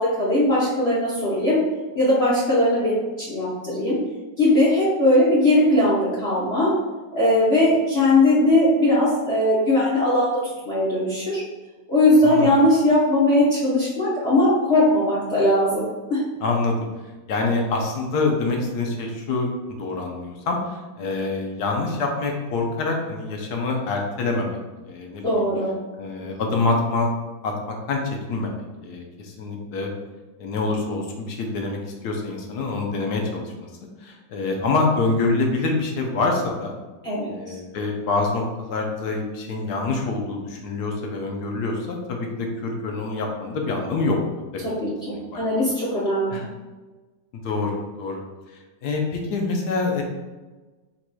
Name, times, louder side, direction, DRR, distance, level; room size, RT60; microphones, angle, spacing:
voice 1, 0.0-1.6 1.9-4.0 4.4-6.7 7.1-11.4 11.9-15.8 16.1-16.2 25.2-25.7 37.0-37.3 44.6-46.4, left 1 dB, 45° left, -9 dB, 1.0 m, -19 dB
voice 2, 16.4-16.9 17.3-19.5 19.8-24.6 24.8-25.5 26.0-27.1 27.4-29.9 30.4-31.8 32.0-33.7 34.0-36.7 37.3-44.2 45.3-45.4 46.3-46.4 47.3-48.2 48.5-50.0, left 3 dB, 65° left, 1 dB, 1.1 m, -26 dB
4.5 x 4.1 x 2.2 m, 1.2 s
omnidirectional pair, 2.0 m